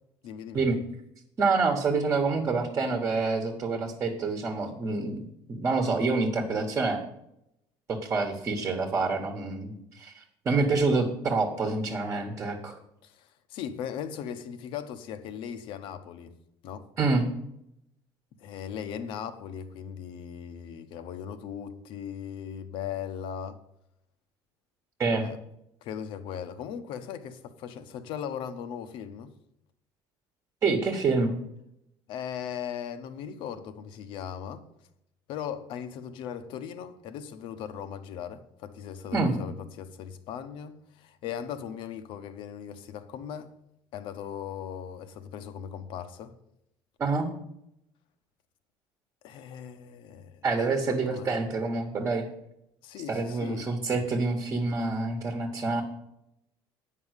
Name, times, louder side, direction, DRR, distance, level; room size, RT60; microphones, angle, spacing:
voice 1, 0.2-0.8 13.0-16.3 16.6-16.9 18.4-23.6 25.2-25.4 25.8-29.3 32.1-34.7 35.3-43.5 43.9-46.4 49.2-51.3 52.8-53.7, left 8 dB, 65° left, 1.0 m, -38 dB
voice 2, 1.4-7.0 7.9-12.8 17.0-17.3 25.0-25.3 30.6-31.4 39.1-39.4 47.0-47.3 50.4-52.3 53.1-55.8, right 3 dB, 30° right, 1.3 m, -27 dB
9.3 x 5.5 x 8.0 m
cardioid pair, 150°, 9 cm